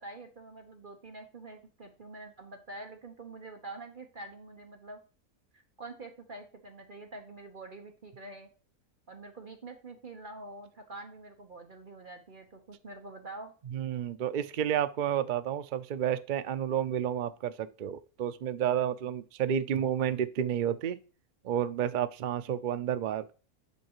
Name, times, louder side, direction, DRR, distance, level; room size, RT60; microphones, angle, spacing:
voice 1, 0.0-5.0 5.5-8.5 9.1-13.5, right 2 dB, 40° right, 1.0 m, -46 dB
voice 2, 13.7-21.0 21.4-23.3, right 9 dB, 80° right, 0.4 m, -30 dB
7.3 x 5.5 x 2.9 m
omnidirectional pair, 1.5 m